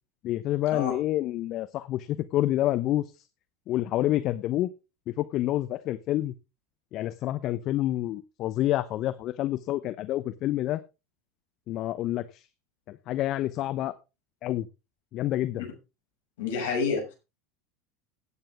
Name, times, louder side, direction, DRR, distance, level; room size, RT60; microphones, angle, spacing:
voice 1, 0.2-3.1 3.7-4.7 5.1-6.3 6.9-10.8 11.7-12.5 12.9-13.9 14.4-14.7 15.1-15.7, left 14 dB, 50° left, 13 dB, 0.9 m, -28 dB
voice 2, 16.4-17.1, left 5 dB, 70° left, 1 dB, 6.5 m, -29 dB
16.5 x 9.0 x 3.6 m, 0.28 s
hypercardioid pair, 85°, 0 cm